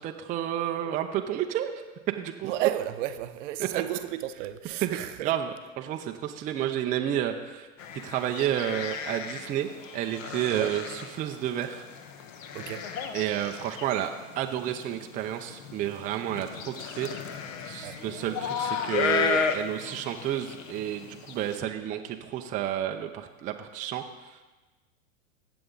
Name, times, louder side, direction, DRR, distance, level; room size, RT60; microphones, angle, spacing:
voice 1, 0.0-1.7 2.2-2.7 3.6-3.8 4.8-7.7 8.0-11.9 13.1-24.6, right 11 dB, 20° right, 0.5 m, -31 dB
voice 2, 2.4-5.3 10.5-10.7 12.5-12.9 17.8-18.0, right 13 dB, 55° right, 0.7 m, -32 dB
sound 1, 7.8-21.6, left 6 dB, 60° left, 1.2 m, -34 dB
16.0 x 6.9 x 3.9 m
hypercardioid pair, 120°, 44 cm